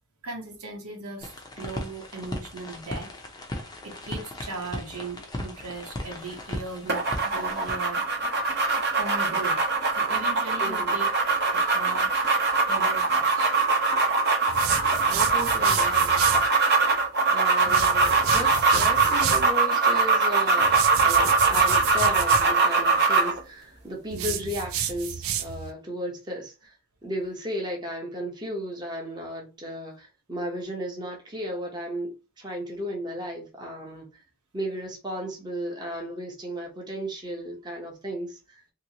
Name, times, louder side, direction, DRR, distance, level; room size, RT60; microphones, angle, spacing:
voice 1, 0.2-3.1 3.8-8.0 9.0-9.6 9.9-11.0 11.3-12.1 12.6-13.5 17.7-17.8 24.1-24.3, right 3 dB, 85° right, 1.1 m, -38 dB
sound 1, 1.2-7.8, left 1 dB, 20° left, 0.6 m, -37 dB
sound 2, 6.9-23.4, right 4 dB, 50° right, 0.9 m, -22 dB
voice 2, 10.6-11.1 15.1-16.4 17.3-26.7 27.0-34.2 34.5-38.6, equal, 20° right, 0.9 m, -35 dB
sound 3, 14.5-16.5 17.6-19.5 20.6-22.5 24.1-25.7, right 9 dB, 65° right, 0.4 m, -31 dB
3.0 x 2.9 x 2.8 m
head